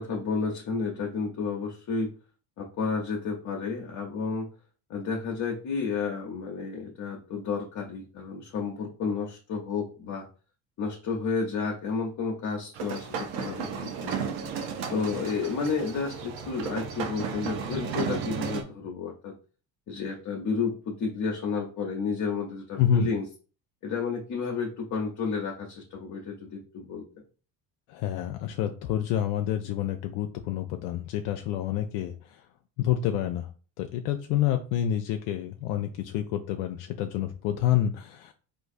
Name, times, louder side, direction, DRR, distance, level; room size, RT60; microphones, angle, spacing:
voice 1, 0.0-2.1 2.6-4.5 4.9-10.3 10.8-14.3 14.9-19.3 19.9-23.2 23.8-27.1, left 5 dB, 40° left, -1 dB, 0.8 m, -31 dB
sound 1, 12.7-18.6, right 7 dB, 65° right, 0.8 m, -34 dB
voice 2, 22.8-23.1 27.9-32.5 32.8-33.5 33.8-38.3, left 10 dB, 75° left, 5 dB, 0.5 m, -28 dB
3.8 x 2.5 x 2.6 m, 0.37 s
supercardioid pair, 90°, 46 cm